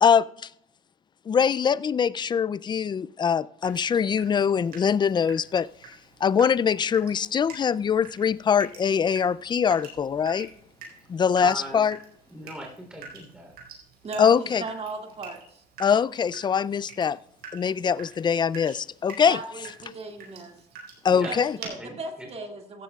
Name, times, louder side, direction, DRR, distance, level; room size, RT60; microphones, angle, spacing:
voice 1, 0.0-0.5 1.3-5.7 6.2-10.5 11.1-12.0 14.2-14.6 15.8-17.2 17.5-19.4 21.0-21.6, left 7 dB, 25° left, 0.4 m, -23 dB
Water tap faucet / Drip, 3.6-21.7, right 5 dB, 75° right, 4.6 m, -47 dB
voice 2, 11.4-11.8 12.3-13.5 21.1-21.4 21.8-22.3, right 1 dB, 5° right, 3.4 m, -39 dB
voice 3, 14.0-15.6 19.3-20.7 21.3-22.8, right 3 dB, 40° right, 2.2 m, -37 dB
16.0 x 13.5 x 2.4 m
cardioid pair, 110°, 17 cm